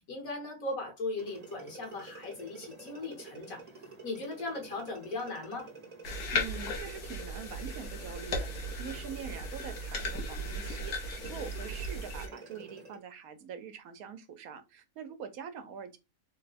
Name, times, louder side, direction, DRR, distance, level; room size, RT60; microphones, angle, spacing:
voice 1, 0.1-3.6 4.0-5.7, left 2 dB, 70° left, 1.7 m, -38 dB
sound 1, 1.2-13.0, right 3 dB, 35° right, 0.7 m, -49 dB
sound 2, 6.0-12.3, left 1 dB, 90° left, 1.4 m, -36 dB
voice 2, 6.3-16.0, right 7 dB, 75° right, 1.1 m, -44 dB
3.5 x 2.2 x 4.0 m
omnidirectional pair, 1.5 m